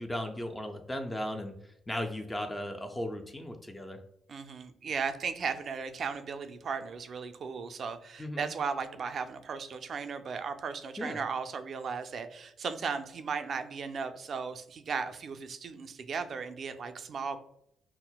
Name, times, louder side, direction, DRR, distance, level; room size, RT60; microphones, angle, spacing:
voice 1, 0.0-4.0 8.2-8.5 11.0-11.2, left 1 dB, 15° left, 4 dB, 0.4 m, -36 dB
voice 2, 4.3-17.4, right 5 dB, 55° right, 9 dB, 0.3 m, -36 dB
5.5 x 2.0 x 2.2 m, 0.74 s
cardioid pair, 90°, 0 cm